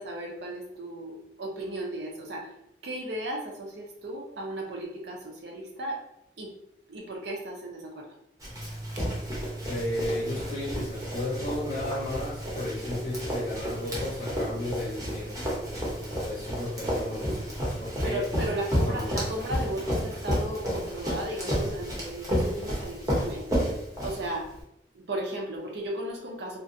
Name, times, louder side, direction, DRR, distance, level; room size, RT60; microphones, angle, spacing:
voice 1, 0.0-2.5 2.8-6.0 6.4-6.5 6.9-8.0 18.0-23.5 24.0-24.5 24.9-26.6, right 1 dB, 70° right, 0 dB, 0.6 m, -35 dB
Run, 8.4-24.6, equal, 20° right, 0.7 m, -31 dB
sound 1, 8.5-17.9, right 1 dB, ahead, 0.3 m, -41 dB
voice 2, 9.7-15.4 16.2-18.5 18.8-19.2, left 1 dB, 40° left, -5 dB, 0.6 m, -34 dB
2.5 x 2.1 x 2.5 m, 0.81 s
head